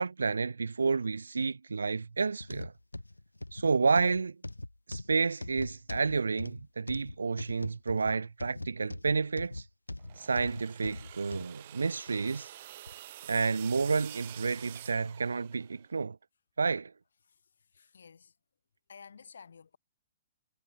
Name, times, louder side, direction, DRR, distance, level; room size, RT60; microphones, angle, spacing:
voice 1, 0.0-2.7 3.5-4.4 4.9-9.6 10.2-12.5 13.3-16.2 16.6-16.9, right 4 dB, 75° right, 1.7 m, -30 dB
sound 1, 2.4-11.5 12.1-12.2 12.9-13.0, left 2 dB, 90° left, 2.5 m, -41 dB
sound 2, 10.0-15.8, right 14 dB, 50° right, 5.2 m, -48 dB
voice 2, 17.7-18.3 18.9-19.8, left 6 dB, 70° left, 2.8 m, -52 dB
figure-of-eight pair, 115°, 0 cm